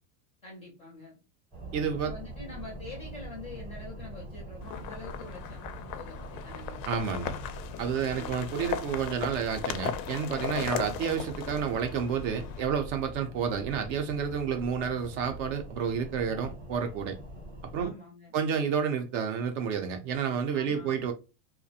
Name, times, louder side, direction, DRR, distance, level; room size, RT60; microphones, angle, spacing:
voice 1, 0.4-1.2 2.0-6.8 7.9-8.4 17.8-18.3 20.5-21.0, left 2 dB, 15° left, 0.4 m, -46 dB
sound 1, 1.5-17.9, right 1 dB, 15° right, 0.7 m, -43 dB
voice 2, 1.7-2.1 6.9-7.3 7.8-17.2 17.7-17.9 18.3-21.1, right 7 dB, 50° right, 0.5 m, -30 dB
sound 2, 4.6-12.6, left 9 dB, 85° left, 0.6 m, -37 dB
2.4 x 2.1 x 2.6 m
supercardioid pair, 160°, 49 cm